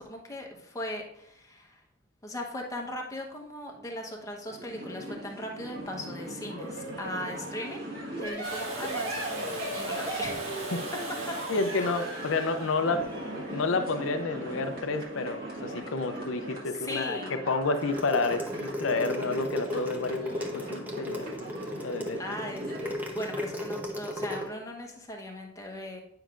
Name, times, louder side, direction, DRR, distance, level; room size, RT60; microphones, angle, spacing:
voice 1, 0.0-1.8 2.2-7.9 8.2-11.0 11.3-11.4 13.4-13.6 16.6-17.4 22.2-26.0, left 1 dB, 15° left, 1 dB, 1.0 m, -39 dB
sound 1, 4.5-22.9, right 1 dB, 50° right, 1.6 m, -39 dB
Domestic sounds home sounds, 8.4-14.2 16.2-16.3, right 2 dB, 85° right, 1.6 m, -39 dB
voice 2, 11.5-13.1 13.5-21.3 21.8-22.2, left 3 dB, 75° left, 8 dB, 0.5 m, -30 dB
sound 2, 17.8-24.4, left 1 dB, 10° right, 0.8 m, -35 dB
9.2 x 5.7 x 2.5 m, 0.77 s
head